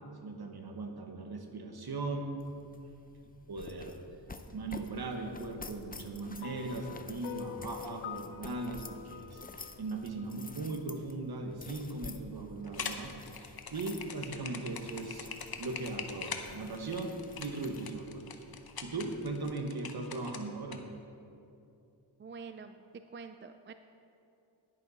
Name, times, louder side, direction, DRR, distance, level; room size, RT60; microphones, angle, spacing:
voice 1, 0.2-2.5 3.5-4.0 4.5-15.3 15.6-18.2 18.8-20.9, right 3 dB, 50° right, 4 dB, 1.3 m, -39 dB
sound 1, 2.4-19.6, left 3 dB, 20° left, 0.6 m, -51 dB
sound 2, 6.4-10.8, left 11 dB, 80° left, 0.6 m, -46 dB
sound 3, 12.6-20.8, left 6 dB, 50° left, 0.9 m, -42 dB
voice 2, 22.2-22.8 23.1-23.7, right 5 dB, 25° right, 9 dB, 0.4 m, -46 dB
10.5 x 10.5 x 4.1 m, 2.7 s
wide cardioid pair, 80°, 47 cm